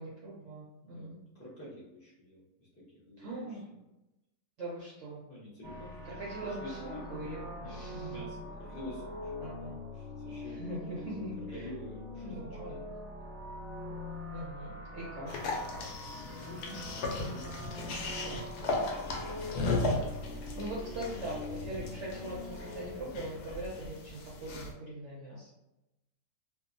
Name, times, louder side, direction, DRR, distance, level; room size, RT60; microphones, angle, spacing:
voice 1, 0.0-1.2 3.2-3.6 4.6-5.2 6.2-8.2 9.4-9.8 10.6-11.6 12.2-12.8 14.3-15.3 19.6-19.9 20.5-25.5, right 1 dB, 65° right, -6 dB, 0.7 m, -41 dB
voice 2, 0.8-3.6 5.3-9.6 9.9-11.1 11.5-12.3 13.8-14.1 16.4-19.6 23.0-23.3, equal, 15° left, -8 dB, 0.5 m, -49 dB
sound 1, 5.6-22.9, left 1 dB, 5° right, 0.9 m, -43 dB
sound 2, 15.3-24.7, left 2 dB, 75° left, 1.0 m, -36 dB
2.7 x 2.4 x 2.5 m, 0.94 s
omnidirectional pair, 1.8 m